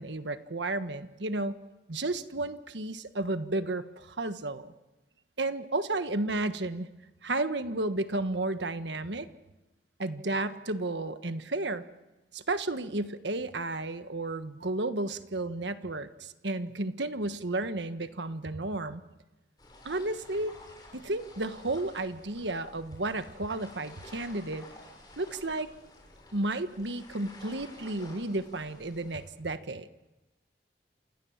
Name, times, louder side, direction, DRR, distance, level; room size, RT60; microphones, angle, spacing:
voice 1, 0.0-1.6 1.9-4.7 5.4-6.9 7.2-9.3 10.0-11.8 12.3-19.0 19.8-20.6 20.9-24.7 25.2-25.7 26.3-29.9, right 2 dB, 80° right, 10 dB, 1.5 m, -32 dB
sound 1, 19.6-29.3, left 2 dB, 25° left, 7.1 m, -52 dB
28.5 x 27.5 x 7.4 m, 1.1 s
head